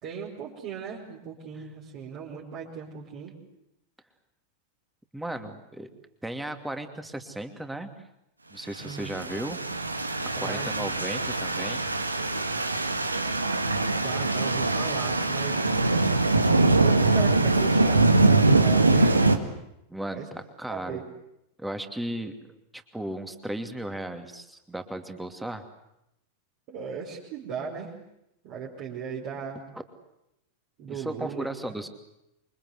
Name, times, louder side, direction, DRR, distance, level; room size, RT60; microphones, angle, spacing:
voice 1, 0.0-3.4 8.8-9.2 10.3-10.9 14.0-15.7 16.8-19.5 20.1-20.3 20.7-21.1 26.7-28.0 28.4-29.6 30.8-31.7, right 6 dB, 40° right, -4 dB, 5.1 m, -37 dB
voice 2, 5.1-5.9 6.2-7.9 8.5-9.6 10.4-11.8 19.9-21.0 21.6-22.3 22.7-25.6 30.9-31.9, right 1 dB, 5° right, 7 dB, 2.7 m, -35 dB
sound 1, 9.0-19.4, right 2 dB, 80° right, 1.7 m, -23 dB
27.5 x 24.0 x 8.1 m, 0.84 s
figure-of-eight pair, 90°, 0 cm